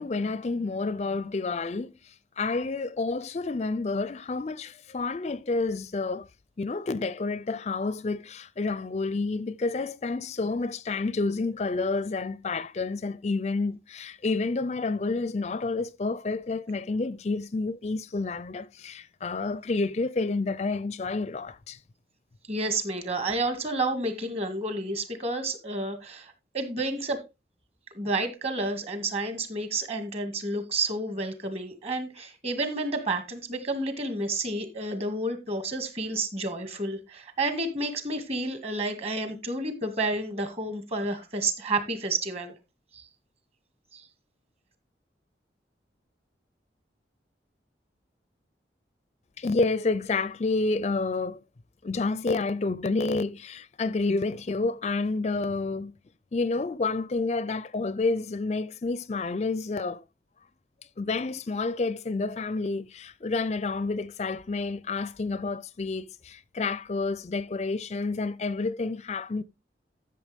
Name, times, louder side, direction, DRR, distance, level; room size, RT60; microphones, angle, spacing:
voice 1, 0.0-6.3 6.6-21.8 49.4-51.4 51.8-55.9 56.3-60.0 61.0-69.4, left 3 dB, 40° left, 0.4 m, -29 dB
voice 2, 22.5-27.2 27.9-42.5 42.9-43.1 43.9-44.1, right 2 dB, 35° right, 2.1 m, -30 dB
13.0 x 6.9 x 3.5 m
head